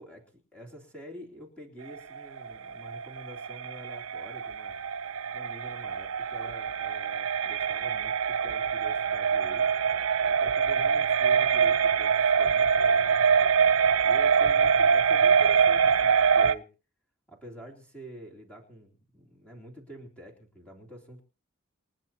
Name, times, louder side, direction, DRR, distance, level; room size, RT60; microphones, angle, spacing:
voice 1, 0.0-4.8 5.3-9.7 10.2-13.2 14.0-16.7 17.3-21.2, right 1 dB, 5° left, -1 dB, 3.0 m, -47 dB
sound 1, 1.9-16.5, right 6 dB, 65° right, 0.6 m, -24 dB
28.0 x 10.5 x 2.9 m, 0.34 s
head